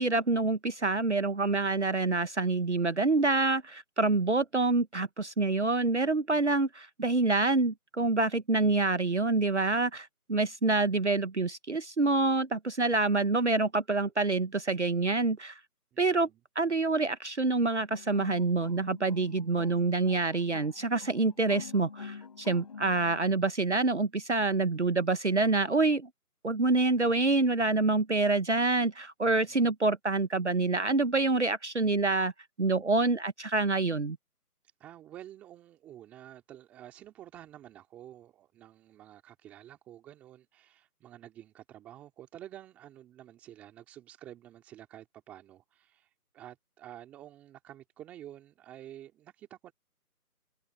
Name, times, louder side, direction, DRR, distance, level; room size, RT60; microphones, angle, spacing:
voice 1, 0.0-15.6 16.0-16.3 16.5-26.1 26.4-32.3 32.6-34.2, right 3 dB, 50° right, 1.1 m, -27 dB
voice 2, 15.9-16.4 29.3-29.7 34.8-49.7, right 12 dB, 5° right, 2.8 m, -50 dB
sound 1, 17.9-23.4, left 6 dB, 25° left, 5.4 m, -47 dB
open air
figure-of-eight pair, 165°, 46 cm